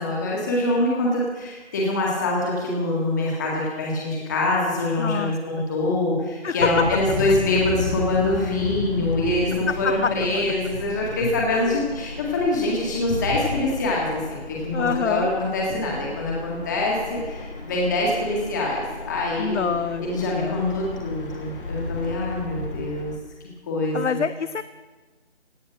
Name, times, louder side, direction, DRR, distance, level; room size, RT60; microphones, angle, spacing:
voice 1, 0.0-19.7 20.0-23.1 23.7-24.2, left 2 dB, 15° left, -2 dB, 1.9 m, -24 dB
voice 2, 5.0-5.7 6.4-6.8 9.5-10.4 11.5-11.9 14.7-15.3 19.4-20.1 20.3-20.7 23.9-24.6, left 6 dB, 85° left, 13 dB, 0.7 m, -27 dB
sound 1, 6.6-23.2, left 2 dB, 50° left, 1.8 m, -34 dB
17.5 x 9.8 x 6.4 m, 1.3 s
figure-of-eight pair, 165°, 35 cm